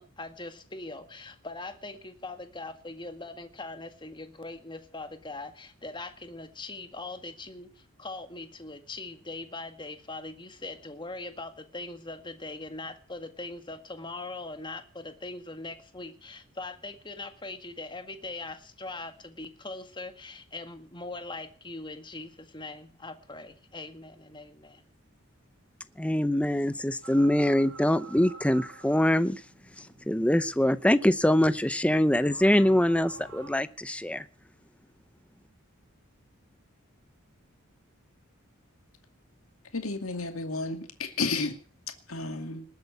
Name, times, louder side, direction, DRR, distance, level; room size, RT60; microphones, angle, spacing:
voice 1, 0.0-24.8, left 2 dB, 20° left, 8 dB, 1.8 m, -41 dB
voice 2, 26.0-29.4 29.8-34.3, left 1 dB, 5° left, 13 dB, 0.7 m, -24 dB
sound 1, 27.0-33.5, right 3 dB, 75° right, 3.8 m, -49 dB
voice 3, 39.7-41.6 42.1-42.6, left 3 dB, 80° left, 6 dB, 2.4 m, -32 dB
20.0 x 8.5 x 8.1 m, 0.42 s
head